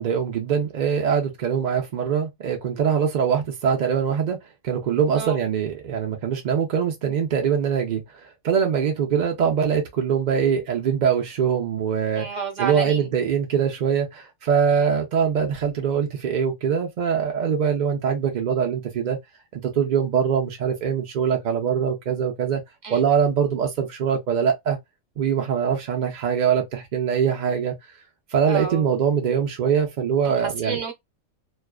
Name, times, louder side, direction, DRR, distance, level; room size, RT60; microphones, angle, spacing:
voice 1, 0.0-4.4 4.6-8.0 8.4-12.3 12.6-19.2 19.5-22.6 22.9-24.8 25.2-27.7 28.3-30.8, right 7 dB, 75° right, 0.4 m, -23 dB
voice 2, 12.1-13.1 14.7-14.9 22.8-23.0 28.5-28.9 30.2-30.9, right 6 dB, 45° right, 0.7 m, -30 dB
2.4 x 2.3 x 2.3 m
omnidirectional pair, 1.4 m